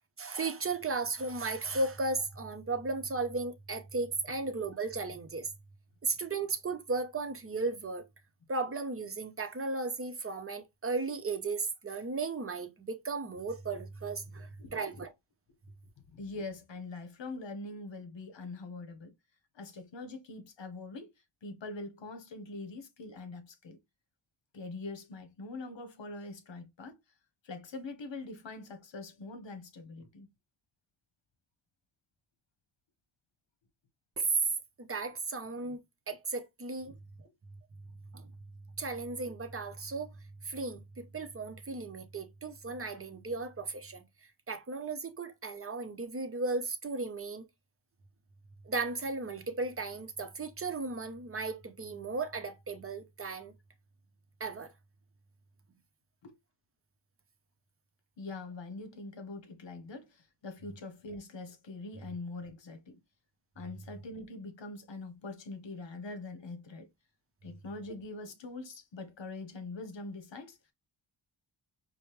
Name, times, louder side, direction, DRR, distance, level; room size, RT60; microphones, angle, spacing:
voice 1, 0.2-5.5 6.0-8.0 8.5-15.1 34.2-34.3 34.8-35.8 36.1-36.9 38.1-38.3 38.8-40.1 40.4-44.0 44.5-47.5 48.6-53.5 54.4-54.7, right 3 dB, 25° right, 0.8 m, -35 dB
voice 2, 14.6-15.1 16.1-19.1 19.5-21.1 21.4-23.8 24.5-27.0 27.4-30.3 36.9-37.0 56.2-56.3 58.2-63.0 63.6-66.9 67.4-70.6, left 3 dB, 65° left, 1.1 m, -43 dB
5.0 x 2.2 x 3.1 m
wide cardioid pair, 95°, 49 cm